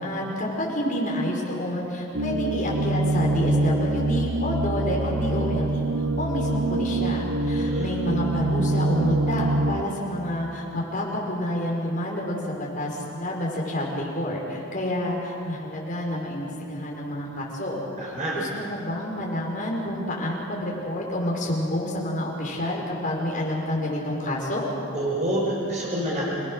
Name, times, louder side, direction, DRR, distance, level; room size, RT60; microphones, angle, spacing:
voice 1, 0.0-24.6, left 1 dB, 40° left, -3 dB, 5.4 m, -29 dB
sound 1, 2.1-9.8, right 2 dB, 65° right, 1.2 m, -25 dB
voice 2, 7.4-8.0 18.0-18.4 24.9-26.2, right 1 dB, 35° right, -4 dB, 5.4 m, -28 dB
28.5 x 19.5 x 6.5 m, 2.7 s
head